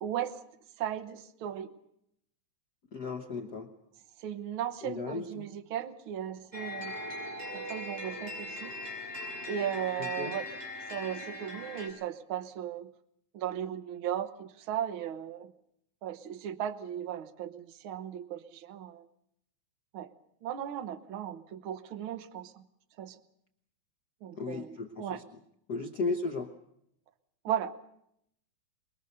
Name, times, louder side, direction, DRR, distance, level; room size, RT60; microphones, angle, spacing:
voice 1, 0.0-0.3 0.8-1.7 4.2-7.0 7.5-8.7 9.5-10.5 10.9-12.9 13.3-15.5 16.0-19.1 19.9-20.1 20.4-22.7 23.0-23.2 24.2-25.2 27.4-27.7, right 10 dB, 60° right, 10 dB, 1.5 m, -36 dB
voice 2, 2.9-3.7 4.8-5.4 10.0-10.3 24.4-25.2 25.7-26.5, left 3 dB, 65° left, 4 dB, 1.0 m, -35 dB
sound 1, 6.5-11.9, left 2 dB, 15° right, 6.8 m, -40 dB
23.5 x 21.0 x 6.7 m, 0.76 s
omnidirectional pair, 3.3 m